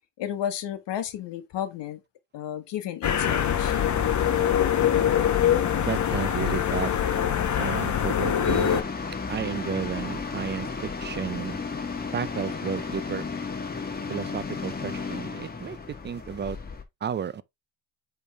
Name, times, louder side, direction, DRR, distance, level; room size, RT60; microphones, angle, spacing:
voice 1, 0.2-2.0 2.3-4.0 11.1-11.2, left 10 dB, 60° left, 1.4 m, -33 dB
sound 1, 3.0-8.8, left 9 dB, 35° left, 1.1 m, -23 dB
voice 2, 5.8-6.9 7.6-8.7 9.3-10.7 11.0-11.6 12.1-13.2 14.1-16.6 17.0-17.4, right 7 dB, 25° right, 0.5 m, -32 dB
sound 2, 8.5-16.8, left 4 dB, 20° left, 1.4 m, -34 dB
8.1 x 3.5 x 3.4 m
cardioid pair, 100°, 48 cm